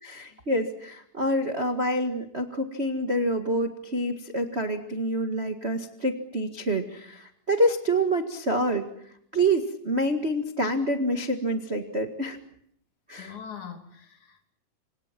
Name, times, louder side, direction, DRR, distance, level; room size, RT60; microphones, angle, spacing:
voice 1, 0.0-8.9 9.3-12.4 13.1-13.4, right 1 dB, 30° right, 5 dB, 1.2 m, -27 dB
voice 2, 13.2-14.5, left 7 dB, 55° left, 6 dB, 4.1 m, -42 dB
28.0 x 26.5 x 6.0 m, 0.69 s
omnidirectional pair, 4.2 m